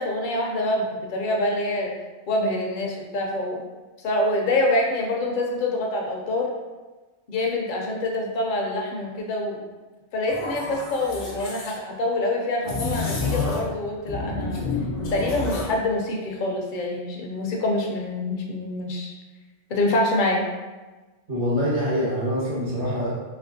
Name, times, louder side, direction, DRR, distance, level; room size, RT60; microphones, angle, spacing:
voice 1, 0.0-1.9 2.3-3.6 4.0-6.5 7.3-9.6 10.1-14.6 15.1-19.1 19.7-20.5, left 1 dB, 55° left, 0 dB, 0.6 m, -26 dB
sound 1, 10.3-11.8 12.6-13.8 14.1-15.8, left 3 dB, 90° left, 1.0 m, -29 dB
voice 2, 21.3-23.1, equal, 55° right, -9 dB, 1.1 m, -25 dB
3.3 x 2.8 x 2.6 m, 1.2 s
omnidirectional pair, 1.2 m